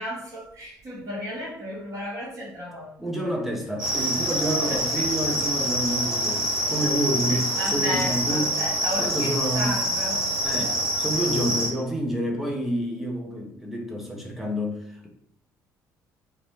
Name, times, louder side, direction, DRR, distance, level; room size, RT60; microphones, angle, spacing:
voice 1, 0.0-2.9 4.6-5.1 7.3-10.4, equal, 30° right, -6 dB, 1.2 m, -34 dB
voice 2, 3.0-8.5 9.0-9.8 10.4-15.1, equal, ahead, -1 dB, 0.7 m, -28 dB
sound 1, 3.8-11.7, equal, 80° right, 0.8 m, -26 dB
2.6 x 2.1 x 2.9 m, 0.70 s
figure-of-eight pair, 50°, 10 cm